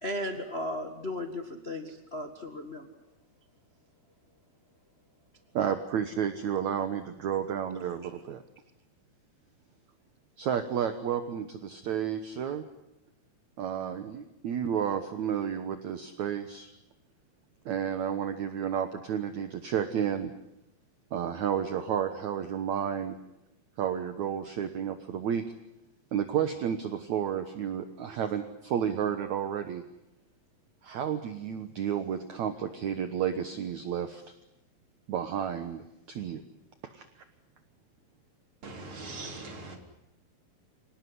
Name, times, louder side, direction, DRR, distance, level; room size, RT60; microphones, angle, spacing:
voice 1, 0.0-2.9, left 1 dB, 60° left, 5 dB, 0.6 m, -35 dB
voice 2, 5.5-8.4 10.4-12.6 13.6-16.7 17.7-20.3 21.1-23.2 23.8-25.4 26.1-29.8 30.8-34.2 35.1-36.4 36.9-37.1, right 8 dB, 60° right, 9 dB, 2.1 m, -31 dB
voice 3, 38.6-39.8, right 2 dB, 35° right, 3 dB, 4.1 m, -41 dB
26.0 x 19.0 x 9.8 m, 0.89 s
omnidirectional pair, 4.5 m